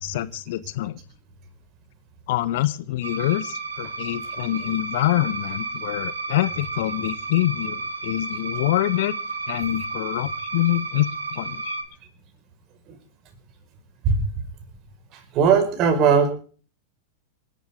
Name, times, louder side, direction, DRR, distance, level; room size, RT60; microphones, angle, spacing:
voice 1, 0.0-1.0 2.3-9.1 9.5-11.8, left 15 dB, 55° left, 17 dB, 0.9 m, -25 dB
sound 1, 3.0-11.8, right 3 dB, 75° right, 2.6 m, -32 dB
voice 2, 15.3-16.3, right 6 dB, 35° right, 8 dB, 4.9 m, -18 dB
27.5 x 11.5 x 3.6 m, 0.41 s
figure-of-eight pair, 90°, 0 cm